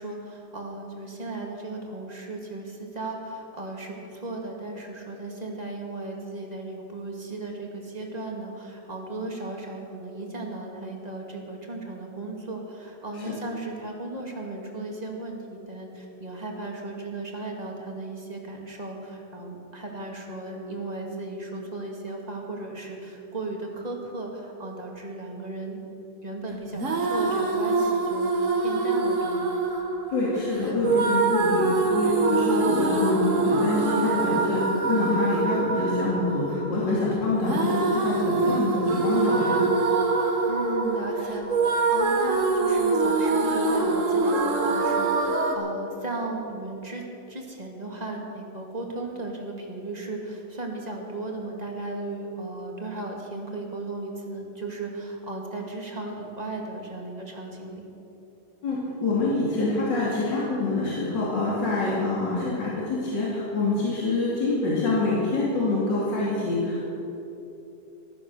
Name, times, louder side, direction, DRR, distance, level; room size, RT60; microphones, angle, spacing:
voice 1, 0.0-25.8 26.2-29.6 40.5-57.9, right 2 dB, 20° right, 0 dB, 2.2 m, -36 dB
sound 1, 26.7-45.5, right 3 dB, 45° right, 1.8 m, -24 dB
voice 2, 30.1-39.7 58.6-66.8, left 3 dB, 80° left, -6 dB, 3.2 m, -26 dB
15.5 x 13.0 x 6.6 m, 2.9 s
omnidirectional pair, 2.0 m